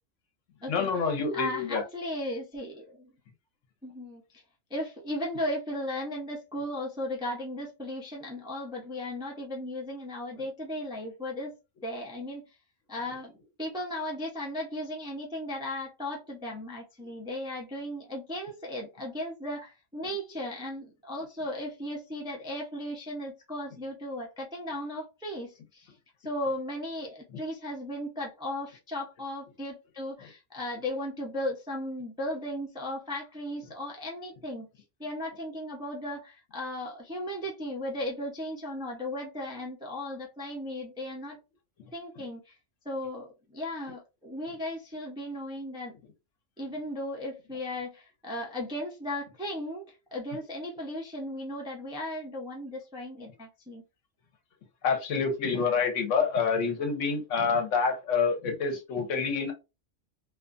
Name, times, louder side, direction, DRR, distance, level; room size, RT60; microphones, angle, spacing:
voice 1, 0.7-1.8 54.8-59.5, left 5 dB, 75° left, 1.1 m, -27 dB
voice 2, 1.3-3.1 3.8-4.4 4.7-11.5 11.8-12.4 12.9-25.9 26.2-34.7 35.0-41.4 41.9-42.6 42.8-46.0 46.6-53.8, left 1 dB, 5° right, 0.3 m, -36 dB
2.4 x 2.3 x 2.4 m
omnidirectional pair, 1.3 m